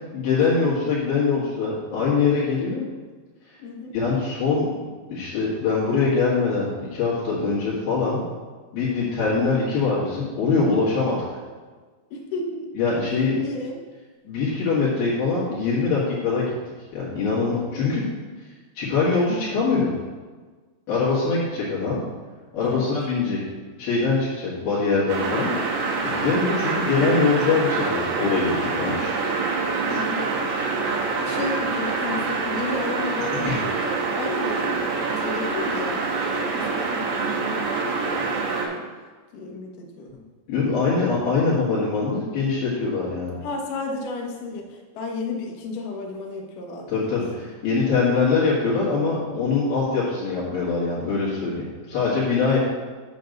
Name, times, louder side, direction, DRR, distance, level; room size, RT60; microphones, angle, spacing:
voice 1, 0.1-2.9 3.9-4.7 5.1-8.3 8.7-11.2 12.8-13.4 14.2-16.5 16.9-18.1 18.7-19.9 20.9-22.0 22.5-23.4 23.8-25.5 26.0-29.1 33.4-33.6 40.5-43.4 46.9-52.6, left 4 dB, 60° left, -10 dB, 3.4 m, -23 dB
voice 2, 3.6-3.9 8.8-9.2 12.1-12.7 13.4-13.8 17.6-18.4 22.6-22.9 29.9-30.3 31.2-38.7 39.3-40.2 43.4-47.5 52.5-52.6, left 3 dB, 85° left, 0 dB, 1.8 m, -33 dB
sound 1, 25.1-38.7, right 4 dB, 75° right, 3.0 m, -26 dB
9.2 x 3.4 x 6.5 m, 1.4 s
omnidirectional pair, 5.4 m